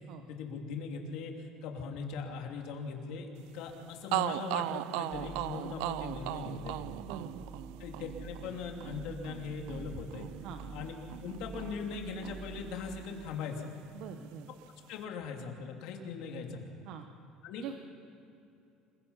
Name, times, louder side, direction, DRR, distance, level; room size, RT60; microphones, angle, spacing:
voice 1, 0.3-6.9 7.8-10.3 10.7-10.9 11.2-13.7 14.9-16.7 17.4-17.6, left 5 dB, 65° left, 2 dB, 3.0 m, -40 dB
sound 1, 3.7-3.8 4.1-12.0 12.2-13.4, right 17 dB, 80° right, 0.4 m, -38 dB
sound 2, 5.1-13.2, right 3 dB, 10° right, 0.9 m, -48 dB
voice 2, 7.0-7.4 10.4-10.6 13.9-14.5 16.8-17.1 17.6-17.7, right 8 dB, 60° right, 6 dB, 1.0 m, -43 dB
27.0 x 22.5 x 5.7 m, 2.7 s
cardioid pair, 165°, 0 cm